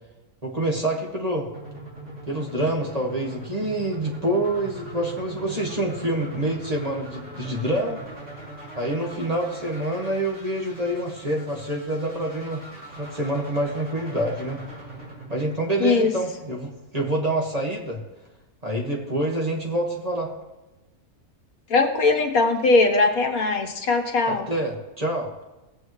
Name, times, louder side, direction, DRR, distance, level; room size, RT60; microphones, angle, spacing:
voice 1, 0.4-1.5 2.3-8.0 8.8-12.6 13.0-14.6 15.3-18.0 18.6-20.3 24.3-25.3, right 1 dB, 25° right, -1 dB, 1.7 m, -26 dB
sound 1, 1.5-16.5, right 2 dB, 45° right, 4.4 m, -41 dB
voice 2, 21.7-24.5, left 3 dB, 70° left, 4 dB, 1.6 m, -20 dB
20.5 x 7.5 x 3.1 m, 1.1 s
omnidirectional pair, 1.6 m